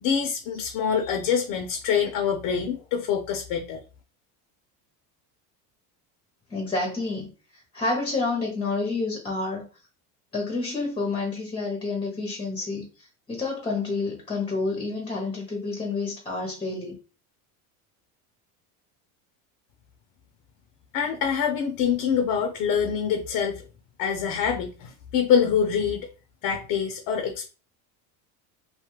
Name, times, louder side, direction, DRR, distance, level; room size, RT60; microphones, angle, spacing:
voice 1, 0.0-3.8 20.9-23.6 24.0-26.1 26.4-27.5, left 7 dB, 50° left, 0.6 m, -25 dB
voice 2, 6.5-9.6 10.3-17.0, left 3 dB, 10° left, 0.7 m, -29 dB
2.7 x 2.3 x 3.0 m
supercardioid pair, 110°, 43 cm